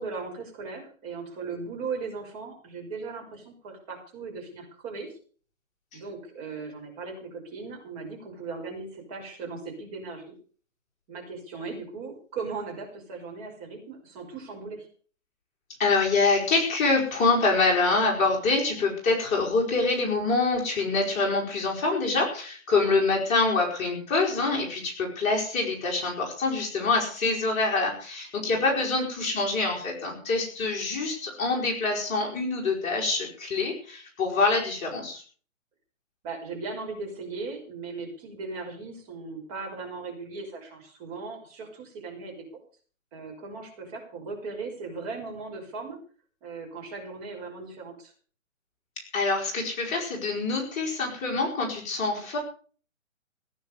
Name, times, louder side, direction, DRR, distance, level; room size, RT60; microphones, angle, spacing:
voice 1, 0.0-5.1 5.9-10.4 11.1-14.9 22.8-23.0 28.4-28.8 36.2-42.3 43.1-46.0 46.4-48.1, right 4 dB, 30° right, 1 dB, 5.5 m, -38 dB
voice 2, 15.8-35.2 49.0-52.4, left 3 dB, 15° left, -2 dB, 4.4 m, -25 dB
17.5 x 9.5 x 6.8 m, 0.42 s
hypercardioid pair, 150°, 39 cm